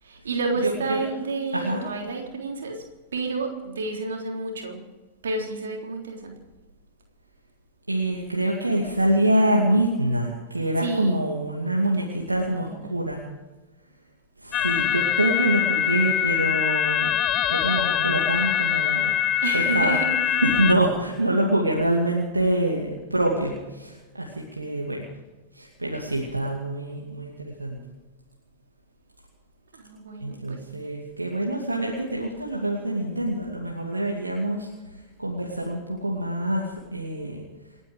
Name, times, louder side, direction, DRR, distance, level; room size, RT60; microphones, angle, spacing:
voice 1, 0.0-2.8 3.1-4.8 5.2-6.3 10.8-11.2 12.1-12.9 19.4-20.2 29.7-30.6, right 3 dB, 65° right, 1 dB, 3.7 m, -30 dB
voice 2, 0.6-1.0 1.5-1.8 7.9-13.2 14.4-17.1 17.5-19.1 19.5-25.1 25.5-27.8 30.2-37.4, right 1 dB, 80° right, -1 dB, 2.5 m, -25 dB
sound 1, 14.5-20.7, left 10 dB, 35° left, 0.8 m, -23 dB
28.5 x 9.8 x 5.1 m, 1.2 s
figure-of-eight pair, 90°, 0 cm